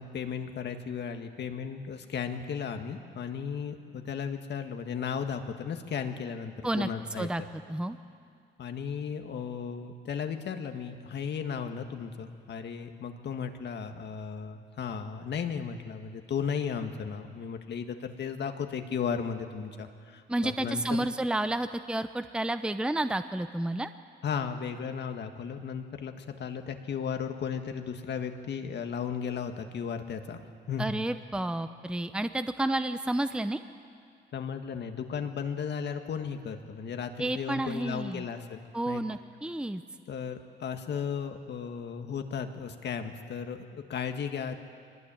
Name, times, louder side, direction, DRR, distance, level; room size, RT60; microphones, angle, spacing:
voice 1, 0.0-7.5 8.6-21.1 24.2-30.4 30.7-30.9 34.3-39.0 40.1-44.6, left 7 dB, 60° left, 6 dB, 1.8 m, -35 dB
voice 2, 20.3-23.9 30.8-33.6 37.2-38.3 38.7-39.8, right 1 dB, 5° right, 10 dB, 0.8 m, -30 dB
23.0 x 19.5 x 9.0 m, 2.3 s
cardioid pair, 90°, 20 cm